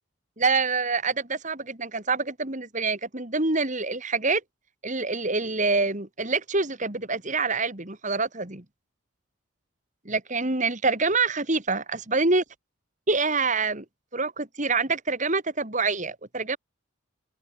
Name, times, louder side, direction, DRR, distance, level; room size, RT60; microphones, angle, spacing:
voice 1, 0.4-4.4 4.8-8.6 10.0-12.4 13.1-13.8 14.1-16.6, right 3 dB, 40° right, 2.8 m, -26 dB
open air
head